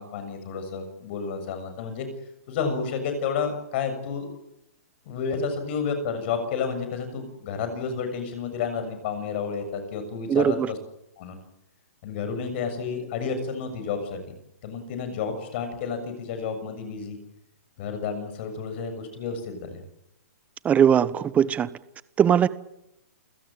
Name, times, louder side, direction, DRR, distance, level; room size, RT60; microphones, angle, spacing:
voice 1, 0.0-2.1 2.5-4.3 5.0-10.8 11.2-11.4 12.0-14.2 14.6-17.2 17.8-19.8, left 5 dB, 45° left, 8 dB, 6.9 m, -31 dB
voice 2, 10.3-10.7 20.6-21.7 22.2-22.5, right 8 dB, 15° right, 17 dB, 1.2 m, -20 dB
28.5 x 17.0 x 9.0 m, 0.82 s
hypercardioid pair, 135°, 8 cm